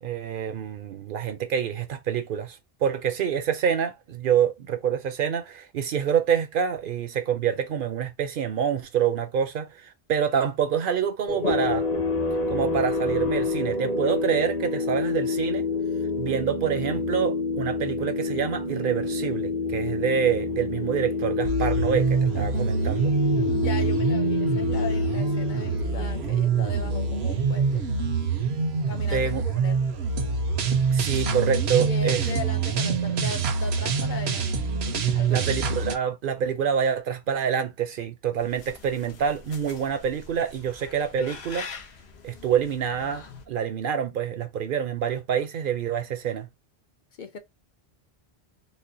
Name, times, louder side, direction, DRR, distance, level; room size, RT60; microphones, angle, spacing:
voice 1, 0.0-11.9 12.5-15.6 16.2-23.1 29.1-29.4 30.9-32.2 35.3-41.7 42.2-46.5, right 8 dB, 60° right, 0.7 m, -27 dB
sound 1, 11.3-27.6, left 4 dB, 40° left, 0.9 m, -28 dB
sound 2, 21.4-35.9, right 5 dB, 80° right, 1.0 m, -25 dB
voice 2, 22.3-22.9 23.6-27.8 28.8-29.9 31.8-34.6 35.1-35.4 47.2-47.4, left 4 dB, 60° left, 0.6 m, -38 dB
sound 3, 38.4-43.4, left 5 dB, 80° left, 1.0 m, -44 dB
4.2 x 2.1 x 2.6 m
omnidirectional pair, 1.1 m